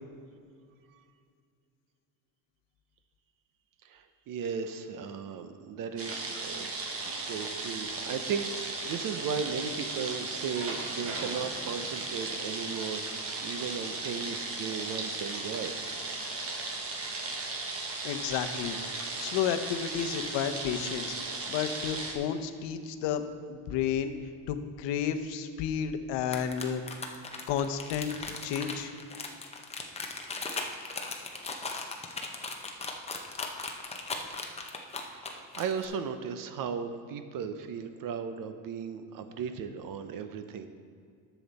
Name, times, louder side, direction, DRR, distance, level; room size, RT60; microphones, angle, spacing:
voice 1, 3.8-13.0 13.4-15.8 35.0-40.7, right 6 dB, 50° right, 9 dB, 0.7 m, -36 dB
sound 1, 6.0-22.1, right 3 dB, 35° right, 1.1 m, -36 dB
voice 2, 18.0-18.8 19.2-23.2 23.5-24.1 24.5-26.8 27.5-28.9, left 8 dB, 85° left, 8 dB, 0.8 m, -32 dB
sound 2, 26.2-35.8, left 4 dB, 15° left, 0.6 m, -37 dB
10.5 x 7.2 x 4.0 m, 2.3 s
cardioid pair, 155°, 42 cm